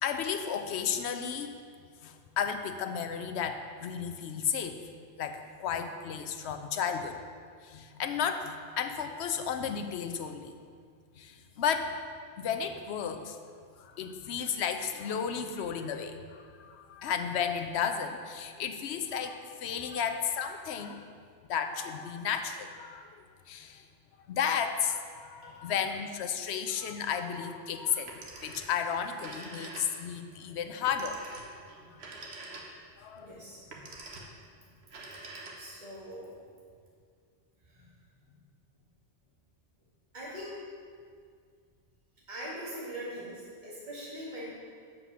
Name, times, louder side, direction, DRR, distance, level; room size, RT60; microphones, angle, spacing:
voice 1, 0.0-1.5 2.0-4.8 5.2-7.2 7.6-10.5 11.2-12.0 12.4-13.4 13.8-21.1 21.5-23.9 24.3-31.3 33.0-33.3, left 7 dB, 85° left, 7 dB, 0.9 m, -33 dB
Telephone, 27.9-28.8 29.1-30.2 30.9-33.0 33.6-34.4 34.8-35.9, right 2 dB, 75° right, 1.3 m, -45 dB
voice 2, 33.1-33.7 34.1-34.2 35.6-36.3 37.6-37.9 38.2-38.3 40.1-40.6 42.3-44.5, equal, 45° right, -8 dB, 2.0 m, -42 dB
7.5 x 5.1 x 6.0 m, 2.1 s
omnidirectional pair, 1.1 m